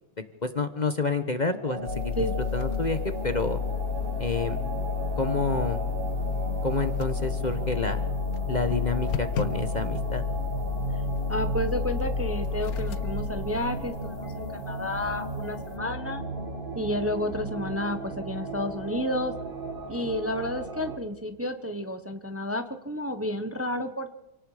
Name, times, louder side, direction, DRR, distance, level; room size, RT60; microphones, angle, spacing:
voice 1, 0.4-2.1 2.5-3.6 4.2-4.6 5.2-5.8 6.6-8.0 8.5-10.2, left 3 dB, 35° left, 9 dB, 1.1 m, -29 dB
sound 1, 1.6-21.0, right 3 dB, 35° right, 1.8 m, -35 dB
sound 2, 1.9-14.5, left 7 dB, 80° left, 1.4 m, -31 dB
voice 2, 11.3-16.2 16.7-19.3 19.9-24.1, left 1 dB, 10° right, 8 dB, 0.9 m, -31 dB
28.5 x 18.5 x 5.0 m, 0.98 s
omnidirectional pair, 1.5 m